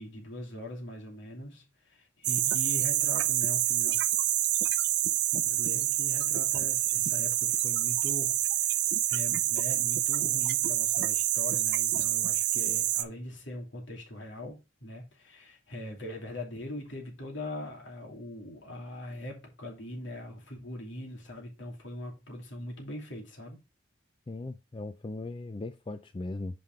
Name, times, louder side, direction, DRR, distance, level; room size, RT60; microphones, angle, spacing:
voice 1, 0.0-4.0 5.4-23.6, left 1 dB, 70° left, 2.7 m, -41 dB
sound 1, 2.2-13.0, right 14 dB, 60° right, 0.5 m, -27 dB
voice 2, 24.3-26.6, left 2 dB, 25° left, 0.4 m, -38 dB
5.7 x 5.1 x 4.5 m
head